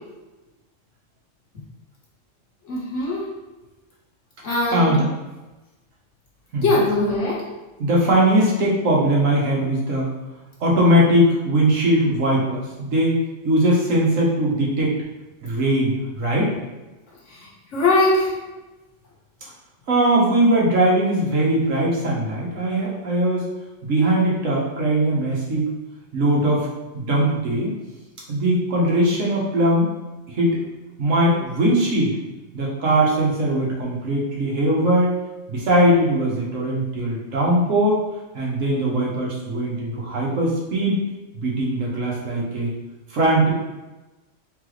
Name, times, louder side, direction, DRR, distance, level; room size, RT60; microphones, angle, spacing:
voice 1, 2.6-3.2 4.4-5.0 6.6-7.5 17.3-18.3, left 2 dB, 65° left, -4 dB, 1.5 m, -21 dB
voice 2, 4.7-5.1 6.5-6.6 7.8-10.1 10.6-14.9 15.4-16.5 19.9-23.4 23.8-25.7 26.1-26.7 26.9-27.8 28.3-29.9 30.3-30.6 31.0-32.1 32.5-35.1 35.5-38.0 38.3-41.0 41.3-42.7 43.1-43.5, right 1 dB, 75° right, -4 dB, 1.5 m, -20 dB
4.0 x 3.9 x 3.2 m, 1.1 s
omnidirectional pair, 1.3 m